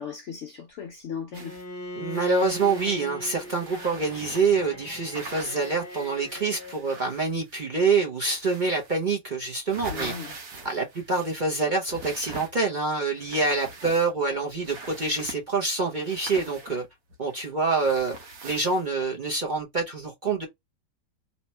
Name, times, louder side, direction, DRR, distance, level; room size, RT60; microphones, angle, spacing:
voice 1, 0.0-1.6 9.9-10.4, left 7 dB, 75° left, 0.6 m, -37 dB
Bowed string instrument, 1.3-6.8, left 1 dB, 15° left, 0.6 m, -40 dB
sound 1, 1.3-1.6 2.1-4.7 5.1-7.8 8.2-9.1 9.4-11.5 11.8-12.8 13.1-14.3 14.6-15.4 16.0-17.3 17.8-19.1, right 3 dB, 75° right, 1.4 m, -43 dB
voice 2, 2.0-10.1 10.6-16.8 17.2-18.1 18.4-20.5, right 4 dB, 40° right, 0.8 m, -26 dB
2.9 x 2.8 x 4.3 m
omnidirectional pair, 1.8 m